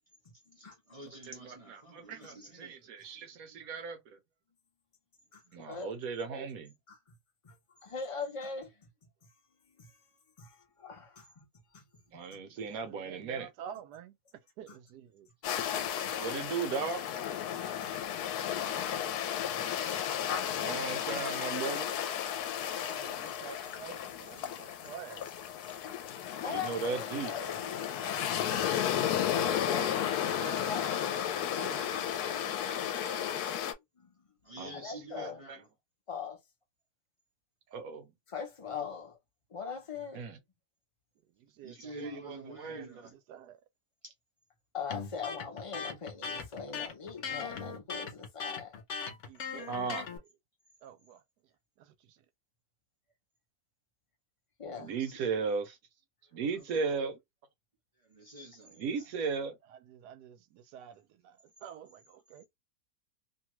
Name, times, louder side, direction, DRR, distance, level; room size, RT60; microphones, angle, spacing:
voice 1, 0.5-3.2 3.5-3.8 5.4-6.1 12.1-12.6 15.9-16.7 28.7-28.9 34.4-35.7 41.6-43.2 44.0-44.1 49.7-49.8 55.0-55.2 56.5-57.0 58.0-59.0, right 1 dB, 30° right, 0.7 m, -50 dB
voice 2, 1.3-4.2 5.5-6.7 12.1-13.5 16.2-17.1 20.6-21.9 26.4-27.4 34.6-34.8 35.2-35.6 37.7-38.1 40.1-40.4 42.0-42.9 49.7-50.0 54.8-55.8 56.3-57.2 58.8-59.6, right 5 dB, 70° right, 1.1 m, -36 dB
voice 3, 5.3-5.9 6.9-7.0 7.4-7.6 7.8-8.9 9.7-9.9 10.4-11.4 11.7-11.9 16.2-16.3 17.8-17.9 19.4-19.5 26.4-27.8 29.3-29.9 30.7-31.0 34.0-34.2 34.7-35.4 36.1-36.4 38.3-39.2 39.5-40.2 44.7-48.8 54.6-54.9, left 5 dB, 35° left, 0.5 m, -41 dB
voice 4, 12.7-15.3 18.3-19.2 22.6-25.3 28.7-29.9 30.3-33.5 40.1-40.2 41.3-42.1 42.7-43.6 49.2-50.0 50.8-52.2 58.6-58.9 59.7-62.4, right 9 dB, 85° right, 1.2 m, -50 dB
sound 1, 15.4-33.7, left 10 dB, 80° left, 1.1 m, -33 dB
Electric guitar, 44.9-50.2, left 5 dB, 55° left, 0.9 m, -39 dB
2.8 x 2.3 x 3.0 m
omnidirectional pair, 1.7 m